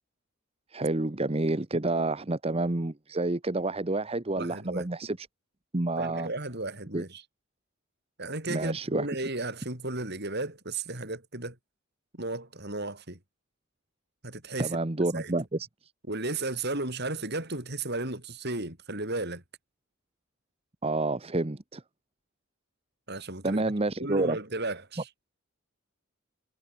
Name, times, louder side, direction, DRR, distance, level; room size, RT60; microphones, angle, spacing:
voice 1, 0.7-5.3 5.7-6.3 6.9-7.0 8.5-9.1 14.6-15.7 20.8-21.8 23.4-24.4 24.9-25.0, right 2 dB, 30° right, 1.0 m, -29 dB
voice 2, 4.4-4.9 6.0-7.2 8.2-11.6 12.1-13.2 14.2-14.8 15.1-15.3 16.1-19.4 23.1-23.6 24.0-25.1, right 2 dB, 50° right, 7.4 m, -34 dB
head